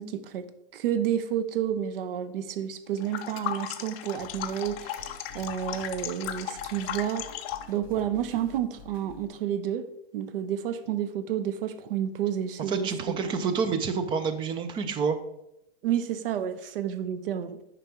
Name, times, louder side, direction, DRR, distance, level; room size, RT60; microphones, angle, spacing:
voice 1, 0.0-7.3 7.7-9.9 10.1-12.9 15.8-17.6, right 10 dB, 60° right, 0.9 m, -30 dB
sound 1, 3.0-7.7, left 11 dB, 30° left, 0.6 m, -36 dB
sound 2, 4.2-9.3, left 6 dB, 45° left, 2.1 m, -49 dB
voice 2, 12.7-15.2, right 5 dB, 15° right, 0.5 m, -28 dB
9.2 x 5.1 x 4.4 m
hypercardioid pair, 145°, 31 cm